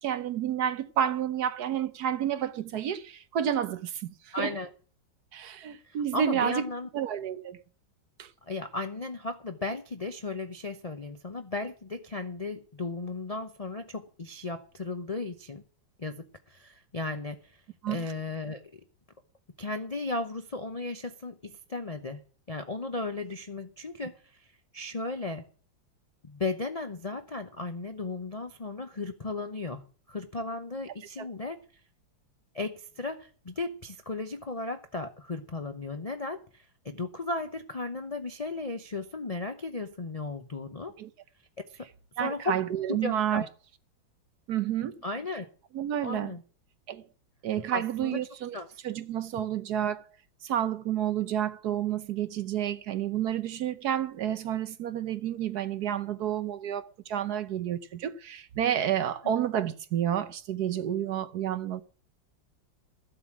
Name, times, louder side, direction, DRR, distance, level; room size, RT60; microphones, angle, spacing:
voice 1, 0.0-4.5 5.3-6.7 6.9-7.6 8.2-8.3 17.8-18.1 31.2-31.3 41.0-41.1 42.2-43.5 44.5-44.9 45.7-46.3 46.9-47.0 47.4-48.6 48.8-50.0 50.4-61.8, right 10 dB, 65° right, 1.2 m, -30 dB
voice 2, 4.3-4.7 5.8-6.9 8.4-15.6 16.0-17.6 17.9-18.8 19.6-22.2 22.5-24.5 24.7-25.4 26.2-31.6 32.5-40.9 41.8-41.9 42.2-42.6 42.9-43.5 45.0-45.5 46.0-46.4 47.7-48.2 48.5-48.7, left 3 dB, 70° left, 0.3 m, -35 dB
14.0 x 8.0 x 6.1 m
omnidirectional pair, 2.1 m